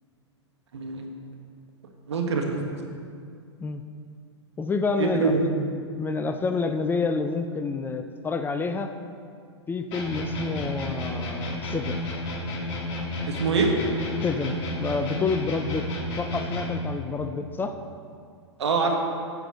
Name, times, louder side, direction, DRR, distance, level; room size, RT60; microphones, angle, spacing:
voice 1, 0.7-1.1 2.1-2.5 5.0-5.5 13.3-13.7 18.6-19.0, right 4 dB, 70° right, 2 dB, 1.6 m, -24 dB
voice 2, 4.6-5.5 6.0-8.9 9.7-12.0 14.2-15.9 16.2-17.7, left 4 dB, 15° left, 8 dB, 0.4 m, -28 dB
sound 1, 9.9-16.9, left 1 dB, 45° left, 2.3 m, -31 dB
9.7 x 6.0 x 6.5 m, 2.3 s
figure-of-eight pair, 105°, 15 cm